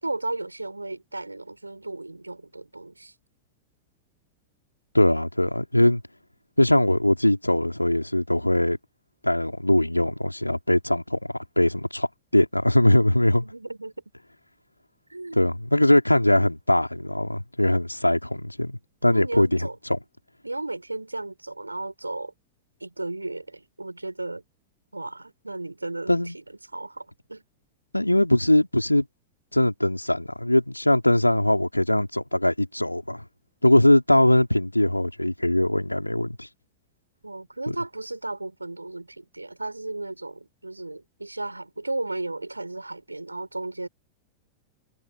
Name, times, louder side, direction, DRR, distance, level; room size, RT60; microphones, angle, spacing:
voice 1, 0.0-3.1 13.4-13.9 15.1-15.4 19.1-19.8 20.4-22.3 22.8-24.4 24.9-26.4 26.7-27.4 37.2-43.9, right 2 dB, 85° right, 6.3 m, -34 dB
voice 2, 4.9-6.0 6.6-8.8 9.2-11.2 11.6-12.1 12.3-13.5 15.3-20.0 26.1-26.4 27.9-29.1 29.5-33.3 33.6-36.5 37.7-37.8, left 1 dB, 85° left, 4.0 m, -21 dB
figure-of-eight pair, 90°, 0 cm